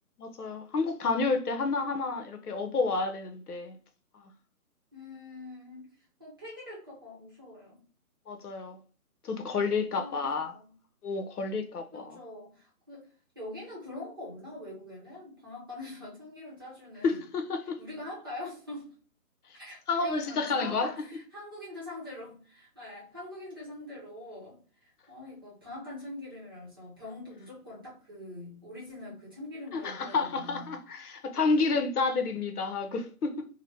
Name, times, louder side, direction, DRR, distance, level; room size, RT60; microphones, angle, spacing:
voice 1, 0.2-3.8 8.3-8.8 9.2-10.5 11.0-12.2 17.0-17.8 19.9-21.1 29.7-33.5, left 4 dB, 90° left, 0.8 m, -30 dB
voice 2, 4.9-5.9 6.2-7.8 9.9-10.7 11.9-13.1 13.3-17.2 17.8-18.9 19.5-30.8, left 2 dB, 15° right, 0.7 m, -44 dB
2.8 x 2.1 x 3.4 m
hypercardioid pair, 165°, 44 cm